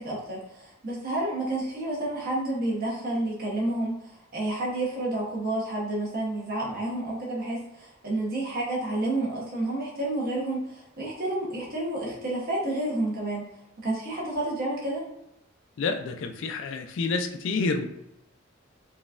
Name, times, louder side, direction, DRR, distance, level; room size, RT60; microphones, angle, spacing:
voice 1, 0.0-13.4 13.8-15.0, right 1 dB, 45° right, -4 dB, 0.9 m, -30 dB
voice 2, 15.8-17.8, left 4 dB, 60° left, 5 dB, 0.3 m, -28 dB
3.9 x 2.3 x 2.4 m, 0.83 s
head